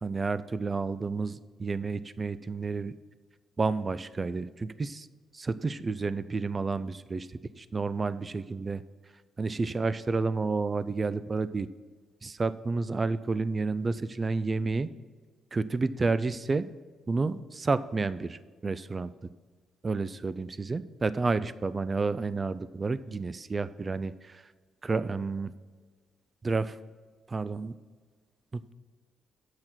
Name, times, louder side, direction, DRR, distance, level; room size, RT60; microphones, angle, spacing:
voice 1, 0.0-2.9 3.6-5.1 5.3-7.3 7.6-8.8 9.4-11.7 12.2-14.9 15.5-16.7 17.1-19.1 19.8-24.4 24.8-25.5 26.4-26.8 27.3-27.7 28.5-28.7, right 3 dB, 30° right, 16 dB, 0.4 m, -30 dB
8.9 x 6.1 x 5.7 m, 1.5 s
cardioid pair, 90°, 0 cm